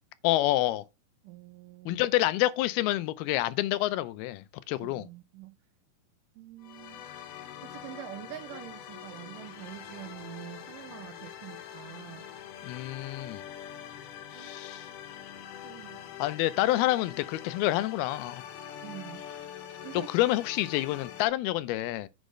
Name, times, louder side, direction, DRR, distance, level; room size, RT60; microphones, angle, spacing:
voice 1, 0.2-0.8 1.9-5.1 12.6-13.4 14.3-14.9 16.2-18.4 19.9-22.1, left 16 dB, 90° left, 2.6 m, -28 dB
voice 2, 1.2-2.0 4.8-5.6 6.4-7.0 7.6-12.3 14.3-14.6 15.6-16.0 18.8-19.3 19.8-20.1, right 14 dB, 80° right, 1.9 m, -45 dB
sound 1, 6.6-21.3, left 10 dB, 65° left, 2.4 m, -44 dB
8.3 x 5.1 x 5.1 m
omnidirectional pair, 4.3 m